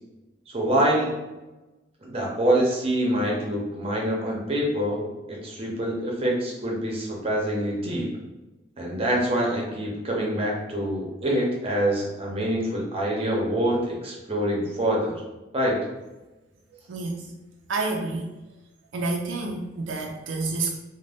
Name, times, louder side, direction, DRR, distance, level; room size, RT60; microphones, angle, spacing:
voice 1, 0.5-1.2 2.0-5.0 5.3-8.1 8.8-15.2 15.5-15.8, right 1 dB, 30° right, -2 dB, 0.6 m, -25 dB
voice 2, 16.9-17.3 17.7-18.3 18.9-20.7, right 3 dB, 75° right, 0 dB, 0.4 m, -29 dB
2.5 x 2.1 x 3.3 m, 1.1 s
head